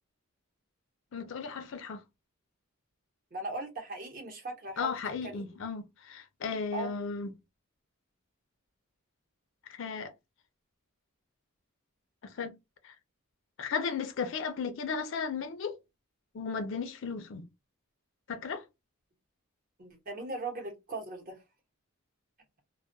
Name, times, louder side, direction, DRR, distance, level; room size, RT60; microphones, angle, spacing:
voice 1, 1.1-2.0 4.8-7.3 9.7-10.1 12.2-12.5 12.8-12.9 13.6-15.8 16.3-17.4 18.3-18.6, left 5 dB, 60° left, 0.4 m, -35 dB
voice 2, 3.3-5.4 6.7-6.9 19.8-21.4, right 2 dB, 40° right, 0.8 m, -39 dB
2.2 x 2.1 x 2.6 m
head